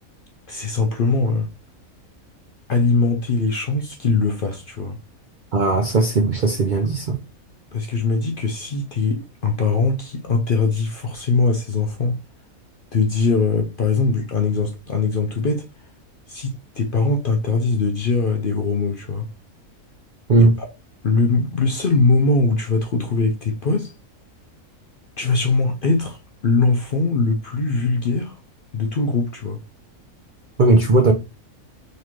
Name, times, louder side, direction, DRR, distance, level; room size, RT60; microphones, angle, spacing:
voice 1, 0.5-1.5 2.7-5.0 7.7-12.2 12.9-15.7 16.3-19.3 20.4-20.5 21.0-23.9 25.2-26.2 26.4-28.4 28.7-29.6, left 3 dB, 55° left, 0.6 m, -21 dB
voice 2, 5.5-7.2 20.3-20.5 30.6-31.1, right 2 dB, 65° right, 0.5 m, -17 dB
3.8 x 3.2 x 3.0 m
omnidirectional pair, 1.5 m